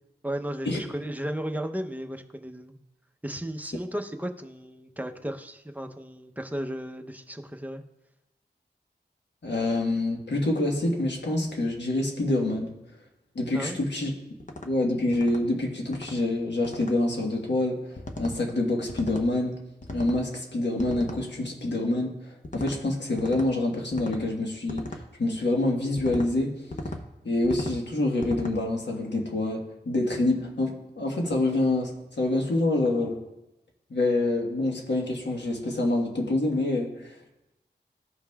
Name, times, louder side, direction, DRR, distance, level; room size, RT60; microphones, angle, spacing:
voice 1, 0.2-2.8 3.2-7.8 13.5-13.8, equal, 10° right, 5 dB, 0.6 m, -34 dB
voice 2, 9.4-12.7 13.3-14.1 14.6-17.8 18.2-19.6 19.9-24.8 25.2-26.6 27.2-33.2 33.9-37.1, left 2 dB, 90° left, 0 dB, 1.3 m, -26 dB
sound 1, 14.4-14.7 15.1-15.4 15.9-16.1 16.6-16.9 18.0-18.4 18.9-19.3 19.8-20.2 20.8-21.2 22.4-22.8 23.2-23.5 23.9-24.2 24.7-25.0 26.0-26.3 26.7-27.0 27.4-27.8 28.2-28.6, left 1 dB, 45° left, 0.8 m, -36 dB
14.5 x 5.3 x 2.3 m, 0.93 s
wide cardioid pair, 60°, 18 cm